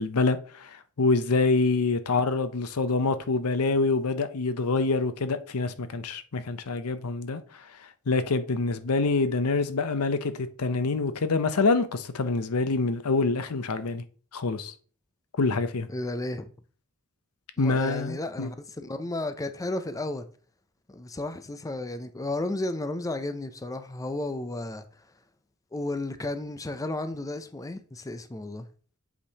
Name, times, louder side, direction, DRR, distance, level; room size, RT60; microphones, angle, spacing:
voice 1, 0.0-7.4 8.1-14.0 14.3-14.7 15.4-15.9 17.6-18.5, left 3 dB, 85° left, 0.7 m, -26 dB
voice 2, 15.9-16.5 17.6-20.3 20.9-24.8 25.7-28.7, left 2 dB, 15° left, 0.4 m, -33 dB
8.1 x 5.1 x 2.8 m
head